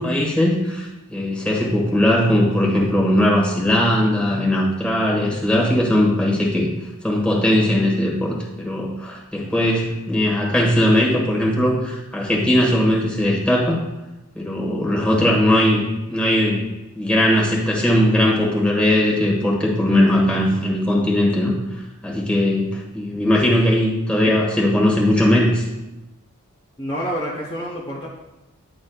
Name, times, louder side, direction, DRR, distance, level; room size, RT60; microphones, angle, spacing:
voice 1, 0.0-6.7 7.0-13.8 14.3-16.6 16.9-21.5 22.0-25.6, left 1 dB, 5° left, -3 dB, 1.4 m, -19 dB
voice 2, 26.8-28.1, equal, 20° left, -5 dB, 1.0 m, -27 dB
10.5 x 6.2 x 2.4 m, 0.98 s
head